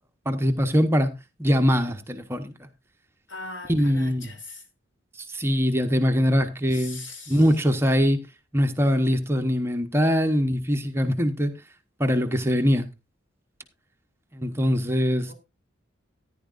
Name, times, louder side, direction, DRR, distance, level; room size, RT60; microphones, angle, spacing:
voice 1, 0.3-1.1 1.4-2.5 3.7-4.3 5.3-7.0 7.3-8.2 8.5-11.5 12.0-12.9 14.3-15.3, equal, 15° right, 0.9 m, -22 dB
voice 2, 3.3-4.6 6.7-7.4 15.2-15.3, left 2 dB, 70° left, 3.0 m, -40 dB
14.5 x 10.5 x 2.5 m
head